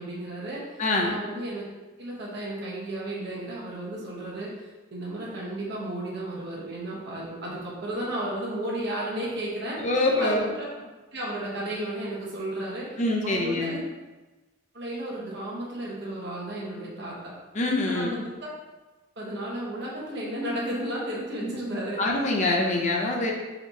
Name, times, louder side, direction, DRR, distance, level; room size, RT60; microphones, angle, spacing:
voice 1, 0.0-1.6 2.0-4.5 4.9-9.8 10.2-10.8 11.1-13.8 14.7-17.3 17.9-18.5 19.2-22.1, right 1 dB, 60° right, -5 dB, 1.2 m, -33 dB
voice 2, 0.8-1.1 9.7-10.5 13.0-13.8 17.5-18.2 21.4-21.5 22.0-23.3, left 2 dB, 35° left, -1 dB, 0.7 m, -25 dB
4.2 x 3.0 x 4.1 m, 1.2 s
head